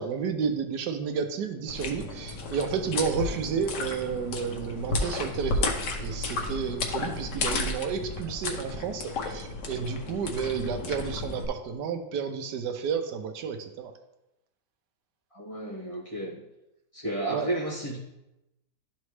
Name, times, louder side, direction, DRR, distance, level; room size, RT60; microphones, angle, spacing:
voice 1, 0.0-13.9 17.3-17.5, right 6 dB, 80° right, 7 dB, 1.3 m, -31 dB
sound 1, 1.7-11.5, left 3 dB, 85° left, 1.5 m, -33 dB
voice 2, 15.3-16.4 16.9-18.0, right 1 dB, 20° left, -5 dB, 1.3 m, -32 dB
12.0 x 4.1 x 3.2 m, 0.92 s
omnidirectional pair, 1.8 m